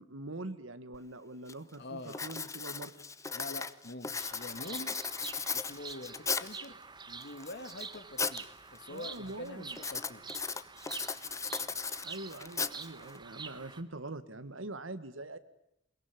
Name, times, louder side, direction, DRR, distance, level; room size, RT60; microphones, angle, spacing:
voice 1, 0.0-3.0 8.9-9.8 12.0-15.4, right 2 dB, 85° right, 12 dB, 1.7 m, -43 dB
Writing, 0.9-1.0 1.5-1.7 2.1-6.6 7.2-8.4 8.7-9.2 9.7-13.2, left 5 dB, 15° left, 0.9 m, -37 dB
voice 2, 1.8-2.4 3.3-5.0 5.5-6.8 7.1-10.3, left 2 dB, 60° left, 9 dB, 2.4 m, -45 dB
Bird vocalization bird call bird song, 4.2-13.8, right 5 dB, 25° right, 1.3 m, -47 dB
22.0 x 22.0 x 10.0 m, 0.82 s
head